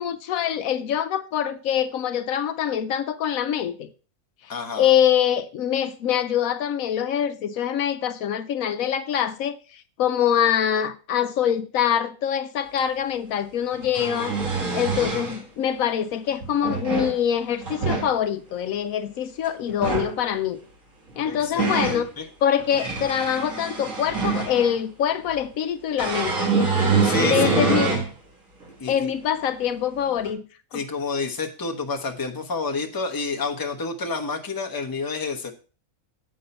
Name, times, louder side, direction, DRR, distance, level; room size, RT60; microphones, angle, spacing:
voice 1, 0.0-3.9 4.4-14.3 14.7-20.6 21.2-22.1 22.4-27.9 28.9-30.4 30.7-30.8, left 9 dB, 75° left, 1.0 m, -24 dB
voice 2, 4.5-4.9 21.2-22.2 27.0-27.9 28.8-29.1 30.7-35.5, left 4 dB, 20° left, 0.8 m, -29 dB
sound 1, 12.8-12.9 13.7-15.4 16.4-17.2 17.6-18.1 19.7-20.1 21.1-22.0 22.6-24.8 26.0-28.1 28.6-28.7 30.2-30.3, right 4 dB, 65° right, 2.1 m, -25 dB
7.6 x 5.5 x 5.4 m
omnidirectional pair, 1.5 m